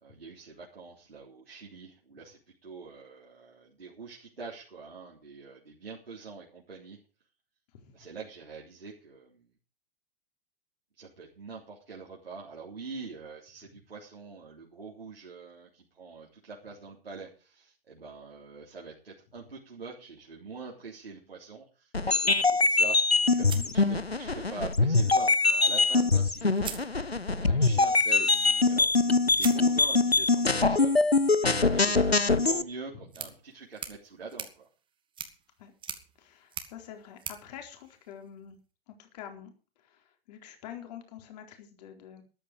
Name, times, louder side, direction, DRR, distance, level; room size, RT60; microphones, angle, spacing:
voice 1, 0.0-7.0 7.9-9.5 11.0-23.5 23.7-26.8 27.4-28.9 29.3-31.3 31.6-34.7, right 4 dB, 75° right, -3 dB, 3.7 m, -44 dB
voice 2, 7.7-8.1 23.3-23.7 27.3-27.8 32.9-33.1 35.6-35.7 36.2-38.6 38.9-42.2, left 9 dB, 45° left, 4 dB, 4.1 m, -47 dB
sound 1, 21.9-32.6, left 3 dB, 90° left, 0.9 m, -23 dB
sound 2, 23.5-24.6 25.9-26.0 26.5-27.5 29.4-38.6, right 8 dB, 15° right, 1.9 m, -45 dB
14.0 x 11.5 x 5.2 m, 0.35 s
figure-of-eight pair, 110°, 30 cm